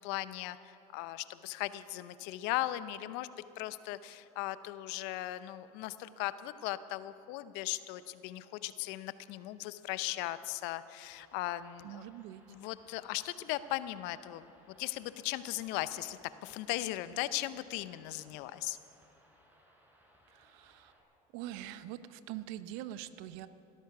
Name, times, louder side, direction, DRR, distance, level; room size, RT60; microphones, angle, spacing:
voice 1, 0.0-3.3 3.6-12.0 12.5-14.5 14.8-18.8, left 16 dB, 65° left, 14 dB, 0.7 m, -38 dB
sound 1, 11.0-21.0, equal, 10° right, 4.3 m, -66 dB
voice 2, 11.8-12.4 20.3-20.9 21.3-23.5, right 13 dB, 65° right, 13 dB, 0.8 m, -44 dB
18.5 x 13.0 x 5.9 m, 2.9 s
hypercardioid pair, 85°, 19 cm